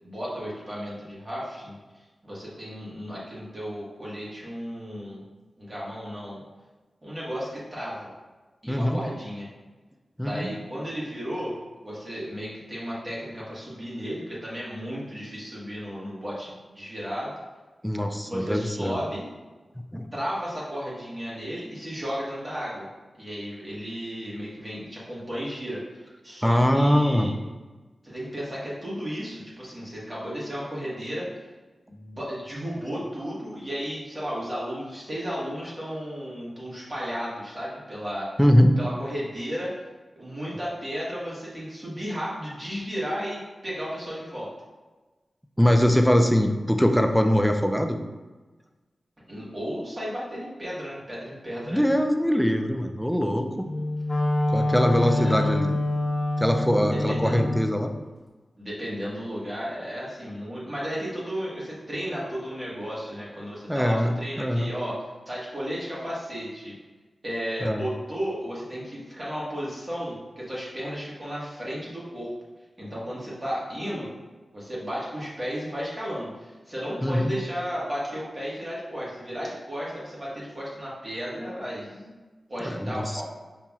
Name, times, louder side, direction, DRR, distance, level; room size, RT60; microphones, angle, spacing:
voice 1, 0.0-1.8 2.2-5.2 5.6-6.4 7.0-8.1 8.6-9.5 10.2-11.5 11.8-17.4 18.2-19.3 20.1-22.9 23.1-27.3 28.0-31.3 31.9-38.3 38.8-39.7 40.2-44.5 49.3-51.9 55.1-55.5 56.9-57.4 58.6-66.7 67.2-72.3 72.8-74.1 74.5-82.1 82.5-83.2, equal, 30° right, -7 dB, 1.4 m, -34 dB
voice 2, 8.7-9.0 10.2-10.5 17.8-19.0 19.9-20.1 26.4-27.3 38.4-38.8 45.6-48.0 51.7-53.5 54.5-55.8 56.4-57.9 63.7-64.7 67.6-67.8 77.0-77.3 82.6-83.2, equal, ahead, 4 dB, 0.3 m, -22 dB
Wind instrument woodwind instrument, 53.6-57.7, left 1 dB, 30° left, 1.1 m, -26 dB
5.5 x 2.9 x 2.3 m, 1.3 s
wide cardioid pair, 110°, 0 cm